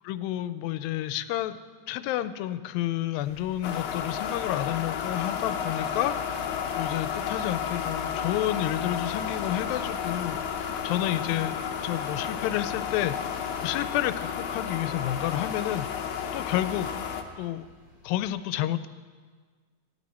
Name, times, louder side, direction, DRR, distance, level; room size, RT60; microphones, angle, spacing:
voice 1, 0.0-1.6 1.9-6.5 6.7-11.6 11.8-15.9 16.3-16.9 17.4-17.7 18.0-18.9, left 13 dB, 85° left, 13 dB, 2.3 m, -30 dB
sound 1, 3.2-18.3, left 2 dB, 75° right, 5.9 m, -52 dB
sound 2, 3.6-17.2, left 7 dB, 70° left, 1.9 m, -32 dB
16.5 x 11.5 x 4.2 m, 1.5 s
omnidirectional pair, 4.0 m